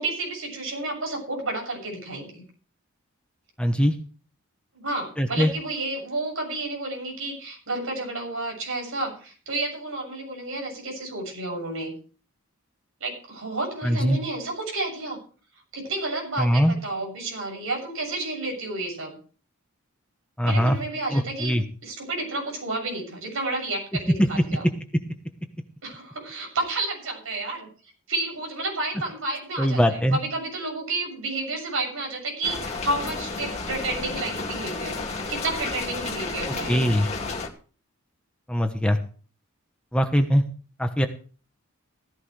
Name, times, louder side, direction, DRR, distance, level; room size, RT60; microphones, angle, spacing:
voice 1, 0.0-2.4 4.7-11.9 13.0-15.2 15.7-19.2 20.4-21.6 21.8-24.6 25.8-27.7 28.1-36.9, right 2 dB, 65° right, 1 dB, 7.5 m, -31 dB
voice 2, 3.6-4.0 5.2-5.5 13.8-14.2 16.4-16.7 20.4-20.8 21.1-21.6 24.2-24.3 24.6-25.0 29.6-30.2 36.7-37.1 38.5-39.0 39.9-40.4 40.8-41.1, equal, 5° left, 5 dB, 1.0 m, -21 dB
sound 1, 32.4-37.5, left 3 dB, 30° left, 2.3 m, -32 dB
16.0 x 15.0 x 3.3 m, 0.39 s
head